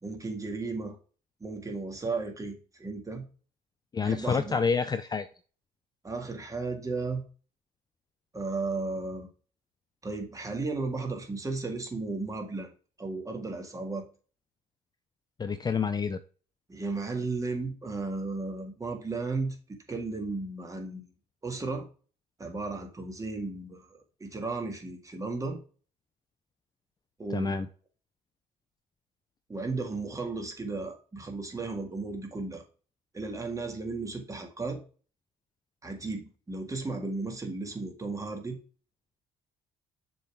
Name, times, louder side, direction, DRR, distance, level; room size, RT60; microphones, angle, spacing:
voice 1, 0.0-1.0 1.4-3.2 4.0-4.6 6.0-7.2 8.3-9.3 10.0-12.7 13.0-14.0 16.7-19.6 19.9-21.1 21.4-21.9 22.4-25.6 27.2-27.6 29.5-32.6 33.1-34.8 35.8-38.6, right 3 dB, 20° right, 3 dB, 1.8 m, -34 dB
voice 2, 3.9-5.3 15.4-16.2 27.3-27.7, left 5 dB, 25° left, 10 dB, 0.5 m, -28 dB
6.8 x 3.9 x 4.7 m, 0.37 s
cardioid pair, 110°, 17 cm